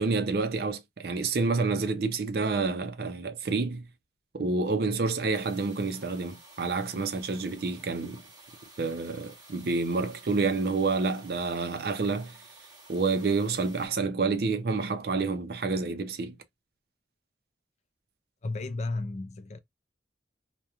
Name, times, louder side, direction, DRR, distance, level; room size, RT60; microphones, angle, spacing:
voice 1, 0.0-3.9 4.3-8.2 8.8-12.4 12.9-16.4, right 4 dB, 60° right, 0.5 m, -28 dB
sound 1, 5.3-13.9, right 2 dB, 20° right, 0.8 m, -53 dB
voice 2, 18.4-19.6, left 2 dB, 40° left, 0.4 m, -33 dB
2.3 x 2.1 x 2.8 m
head